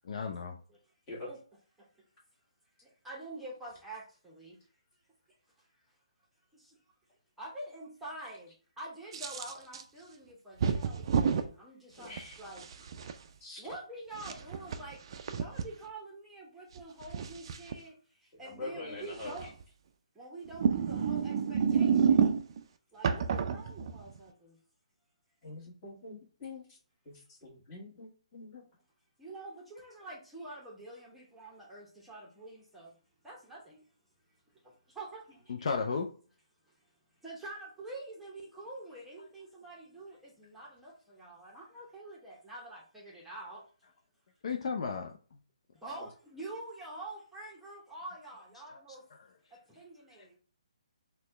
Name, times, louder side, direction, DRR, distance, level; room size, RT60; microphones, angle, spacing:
voice 1, 0.1-0.6 35.5-36.1 44.4-45.1 48.7-48.8 50.2-50.4, left 5 dB, 60° left, 4 dB, 0.5 m, -34 dB
voice 2, 2.8-4.6 6.5-6.8 7.4-12.6 13.6-19.5 20.1-22.3 22.9-24.6 29.2-32.9 33.2-33.8 34.6-35.3 37.2-43.6 45.7-49.0 49.5-50.4, right 2 dB, 5° right, -5 dB, 0.8 m, -46 dB
sound 1, 9.1-9.8 10.6-11.5 12.2-13.1 14.1-15.7 16.8-17.7 19.2-19.6 20.5-22.6 23.0-24.2, right 7 dB, 45° right, 0.3 m, -29 dB
voice 3, 12.0-12.4 13.4-13.6 18.3-19.5 25.4-26.8 27.0-28.6 46.0-46.1, left 2 dB, 25° left, -4 dB, 1.4 m, -45 dB
4.1 x 2.2 x 3.1 m, 0.40 s
hypercardioid pair, 155°, 4 cm